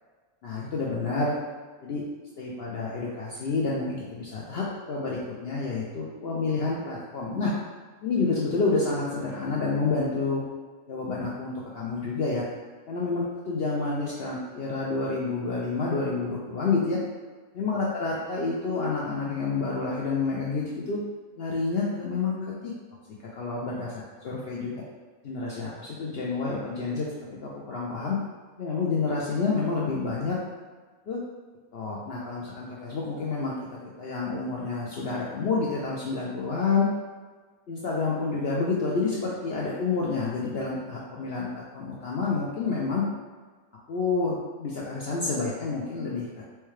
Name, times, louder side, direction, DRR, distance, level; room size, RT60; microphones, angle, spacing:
voice 1, 0.4-1.3 1.8-2.0 2.4-7.5 8.0-10.4 10.9-12.4 12.9-17.0 17.5-21.0 21.4-22.3 22.6-22.7 23.3-23.9 24.2-24.7 25.2-28.2 28.6-30.4 31.1-31.2 31.7-33.5 34.0-36.9 37.7-43.0 43.9-46.4, left 4 dB, 70° left, -5 dB, 0.5 m, -29 dB
4.4 x 2.3 x 3.1 m, 1.4 s
omnidirectional pair, 1.5 m